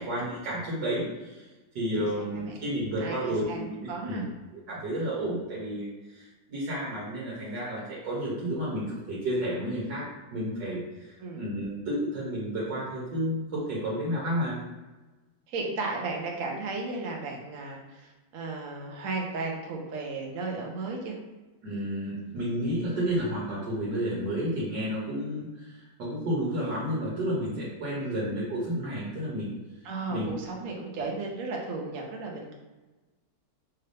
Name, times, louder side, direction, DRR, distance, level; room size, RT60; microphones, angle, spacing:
voice 1, 0.0-1.5 1.7-4.3 4.7-10.0 10.3-14.6 21.6-29.5 30.1-30.3, equal, 75° right, -6 dB, 1.7 m, -31 dB
voice 2, 2.2-2.5 3.0-3.6 3.9-4.2 11.2-11.4 15.5-21.2 28.0-28.2 29.8-32.5, right 3 dB, 55° right, 0 dB, 1.1 m, -35 dB
5.6 x 2.7 x 3.3 m, 1.2 s
omnidirectional pair, 1.9 m